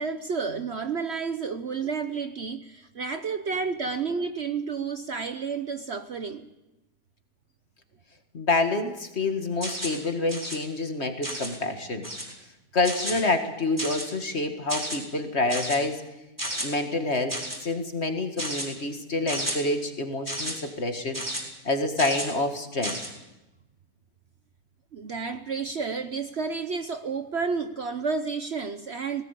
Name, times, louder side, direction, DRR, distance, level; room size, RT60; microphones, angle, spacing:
voice 1, 0.0-6.5 24.9-29.2, right 5 dB, 50° right, 1.0 m, -31 dB
voice 2, 8.3-12.1 12.7-16.0 16.6-17.4 17.6-21.2 21.6-23.0, left 2 dB, 45° left, 2.1 m, -27 dB
sound 1, 9.6-10.0 10.3-10.6 11.2-11.6 12.0-12.3 12.8-13.2 13.8-14.1 14.7-15.0 15.5-15.8 16.4-16.7 17.3-17.6 18.4-18.7 19.3-19.6 20.3-20.5 21.1-21.4 22.0-22.3 22.8-23.1, equal, 10° right, 4.6 m, -32 dB
19.0 x 17.5 x 8.3 m
omnidirectional pair, 1.6 m